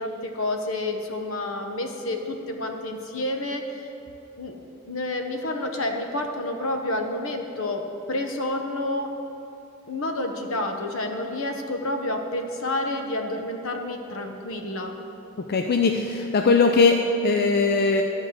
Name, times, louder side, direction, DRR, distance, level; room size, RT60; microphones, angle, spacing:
voice 1, 0.0-3.9 4.4-4.5 4.8-7.8 8.1-9.1 9.9-15.0, left 1 dB, 70° left, 4 dB, 1.0 m, -29 dB
voice 2, 15.5-18.0, left 4 dB, 50° left, 4 dB, 0.5 m, -20 dB
12.5 x 4.7 x 7.9 m, 2.9 s
head